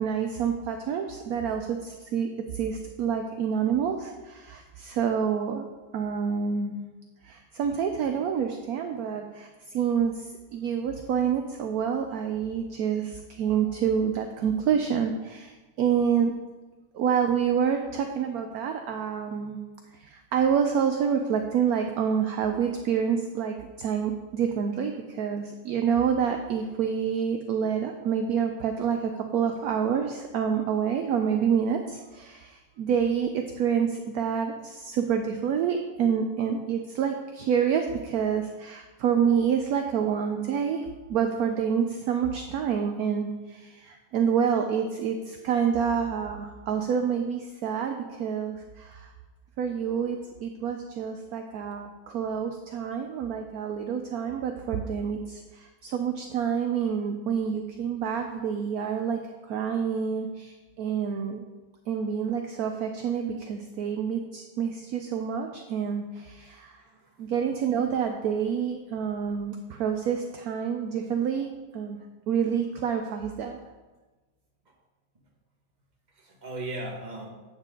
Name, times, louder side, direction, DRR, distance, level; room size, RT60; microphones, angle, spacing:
voice 1, 0.0-5.7 5.9-6.8 7.2-10.3 10.5-16.3 16.9-19.6 19.9-49.1 49.6-59.2 59.5-61.4 61.9-66.8 67.2-72.0 72.3-73.6, right 7 dB, 70° right, 5 dB, 0.9 m, -28 dB
voice 2, 66.4-67.3 74.6-74.7 76.1-77.3, right 2 dB, 25° right, -2 dB, 1.5 m, -39 dB
8.8 x 7.3 x 3.8 m, 1.2 s
omnidirectional pair, 2.0 m